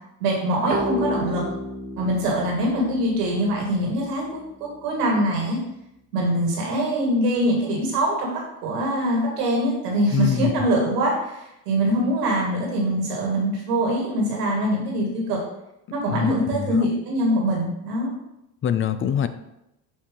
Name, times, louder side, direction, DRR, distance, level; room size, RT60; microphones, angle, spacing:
voice 1, 0.2-1.5 2.0-5.6 6.1-15.4 15.9-18.1, right 1 dB, 90° right, -1 dB, 1.8 m, -23 dB
sound 1, 0.7-4.2, left 1 dB, 20° right, 1.0 m, -32 dB
voice 2, 9.9-10.7 16.1-16.9 18.6-19.3, left 8 dB, 30° left, 11 dB, 0.4 m, -25 dB
7.1 x 2.7 x 5.1 m, 0.86 s
hypercardioid pair, 80°, 46 cm